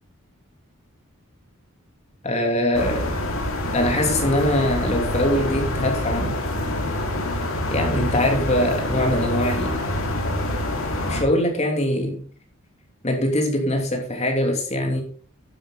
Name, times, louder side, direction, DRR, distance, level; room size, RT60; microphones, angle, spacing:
voice 1, 2.2-3.1 3.7-6.3 7.7-9.8 11.1-12.2 13.0-15.0, left 1 dB, 30° left, 2 dB, 3.1 m, -22 dB
sound 1, 2.7-11.2, left 1 dB, 75° left, 2.9 m, -26 dB
12.0 x 10.0 x 3.9 m, 0.42 s
head